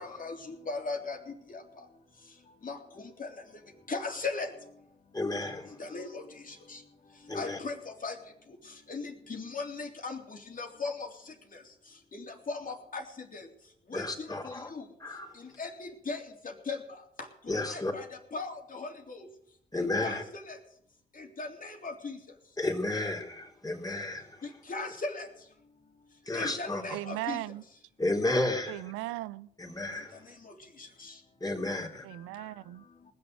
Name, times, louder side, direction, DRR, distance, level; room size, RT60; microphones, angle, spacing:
voice 1, 0.0-1.9 2.6-3.4 3.9-4.5 5.8-6.8 7.3-8.2 8.5-11.6 12.1-13.5 13.9-14.9 15.3-19.3 19.8-20.6 21.1-22.2 24.4-25.3 26.3-27.4 29.9-31.2 31.8-32.5, left 3 dB, 40° left, 3.4 m, -39 dB
voice 2, 5.1-5.8 7.3-7.6 13.9-14.7 15.0-15.4 17.5-17.9 19.7-20.2 22.6-24.4 26.3-26.8 28.0-28.8 29.6-30.2 31.4-32.1, left 2 dB, 20° left, 3.8 m, -32 dB
voice 3, 26.9-27.6 28.7-29.5 32.0-32.8, right 17 dB, 85° right, 0.5 m, -37 dB
19.5 x 6.8 x 7.8 m
hypercardioid pair, 50°, 21 cm